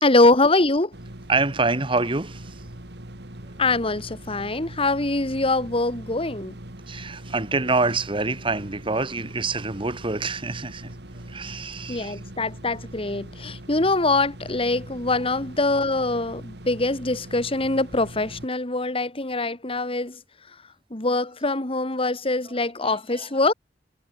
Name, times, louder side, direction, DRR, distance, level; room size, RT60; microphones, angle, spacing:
voice 1, 0.0-0.9 3.6-6.6 11.9-20.2 20.9-23.5, left 2 dB, 30° left, 2.2 m, -23 dB
sound 1, 0.9-18.5, right 1 dB, 65° right, 3.0 m, -41 dB
voice 2, 1.3-2.6 6.9-10.9 11.3-12.2 22.8-23.3, right 3 dB, 30° right, 1.8 m, -26 dB
head